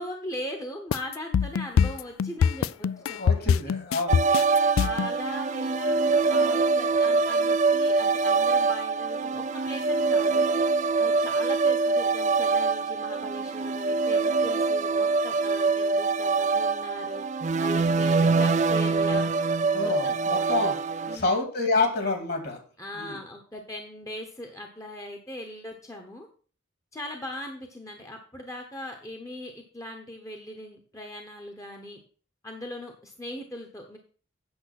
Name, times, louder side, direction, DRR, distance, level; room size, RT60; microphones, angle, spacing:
voice 1, 0.0-3.6 4.8-10.5 11.0-17.2 17.6-19.3 19.8-20.2 21.1-21.3 22.8-26.3 26.9-32.0 32.4-34.0, left 1 dB, 15° left, 3 dB, 1.0 m, -39 dB
sound 1, 0.9-5.1, left 7 dB, 90° left, 0.3 m, -23 dB
voice 2, 3.1-4.3 19.7-20.7 21.1-22.6 22.9-23.2, left 3 dB, 50° left, 5 dB, 2.3 m, -28 dB
sound 2, 4.1-21.2, right 4 dB, 35° right, 0.4 m, -24 dB
8.8 x 6.5 x 5.9 m, 0.41 s
head